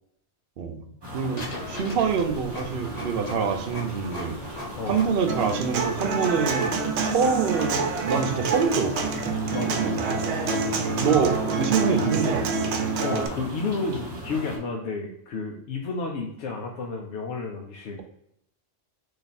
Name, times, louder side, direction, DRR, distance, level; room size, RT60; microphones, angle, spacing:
sound 1, 1.0-14.6, equal, 25° right, 0.8 m, -38 dB
voice 1, 1.1-4.4 4.9-9.0 9.8-9.9 11.0-12.7, right 6 dB, 65° right, 6 dB, 0.7 m, -25 dB
Printer, 1.3-9.2, left 2 dB, 40° left, 0.9 m, -40 dB
Human voice / Acoustic guitar, 5.3-13.3, right 4 dB, 85° right, 0.9 m, -27 dB
voice 2, 9.5-9.9 10.4-10.8 13.0-18.0, left 4 dB, 85° left, 0 dB, 0.9 m, -31 dB
3.4 x 2.7 x 4.0 m, 0.75 s
omnidirectional pair, 1.1 m